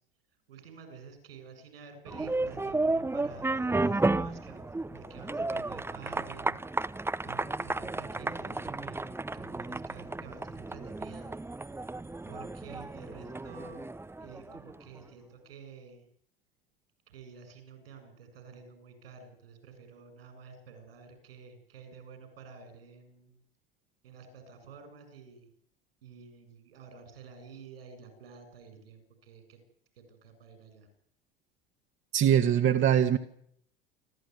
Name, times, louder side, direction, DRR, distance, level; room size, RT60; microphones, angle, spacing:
voice 1, 0.5-6.6 7.2-11.3 12.3-13.9 14.2-16.1 17.1-23.4 24.0-25.5 26.0-29.6 30.0-30.9, right 5 dB, 85° right, 9 dB, 7.7 m, -50 dB
sound 1, 2.1-14.8, right 2 dB, 10° right, 0.9 m, -33 dB
voice 2, 32.1-33.2, right 10 dB, 45° right, 5 dB, 1.8 m, -22 dB
28.5 x 13.0 x 9.7 m, 0.69 s
hypercardioid pair, 80°, 29 cm